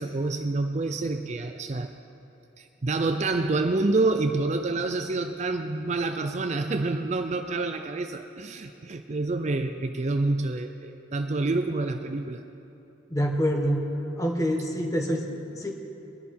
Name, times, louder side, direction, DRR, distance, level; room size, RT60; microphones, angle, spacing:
voice 1, 0.0-1.9 2.6-12.4, right 3 dB, 35° right, 7 dB, 0.4 m, -27 dB
voice 2, 13.1-13.9 14.2-15.7, equal, 15° left, 1 dB, 1.4 m, -26 dB
21.5 x 11.0 x 4.4 m, 3.0 s
head